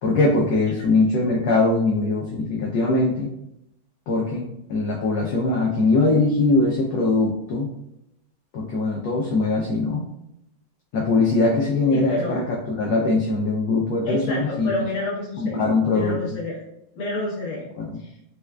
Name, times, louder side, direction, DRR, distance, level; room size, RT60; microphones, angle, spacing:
voice 1, 0.0-3.3 4.1-4.4 4.7-7.7 8.5-10.1 10.9-14.7 15.4-16.4 17.8-18.0, left 3 dB, 75° left, -2 dB, 1.1 m, -21 dB
voice 2, 11.9-12.4 14.0-16.6 16.9-17.7 18.0-18.1, left 2 dB, 55° left, -4 dB, 1.3 m, -29 dB
4.2 x 2.3 x 2.2 m, 0.82 s
omnidirectional pair, 2.1 m